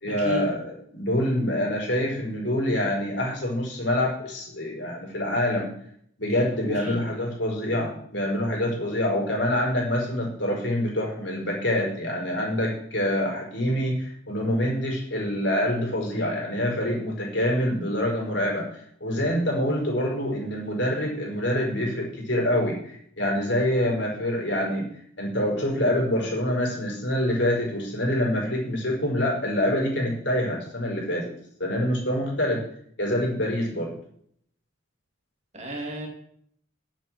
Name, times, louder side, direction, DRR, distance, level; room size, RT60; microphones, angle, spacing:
voice 1, 0.0-5.7 6.2-24.8 25.2-31.2 31.6-32.6 33.0-33.9, left 1 dB, 60° left, -1 dB, 5.5 m, -26 dB
voice 2, 6.6-7.0 35.5-36.1, right 1 dB, 35° right, 0 dB, 3.1 m, -32 dB
11.0 x 7.8 x 7.8 m, 0.65 s
head